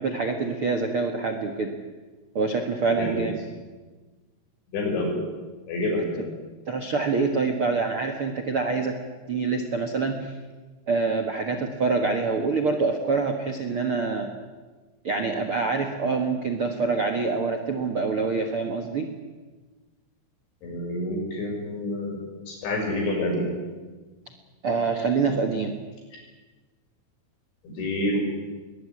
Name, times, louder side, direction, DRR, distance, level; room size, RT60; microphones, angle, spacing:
voice 1, 0.0-1.7 2.3-3.4 6.7-8.9 9.3-10.4 10.9-14.3 15.0-19.1 24.6-25.7, right 4 dB, 65° right, 5 dB, 1.3 m, -25 dB
voice 2, 4.7-5.2 5.7-6.2 20.6-22.2 22.5-23.5 27.7-28.3, left 1 dB, 90° left, 1 dB, 8.6 m, -27 dB
22.0 x 20.0 x 9.8 m, 1.3 s
omnidirectional pair, 5.2 m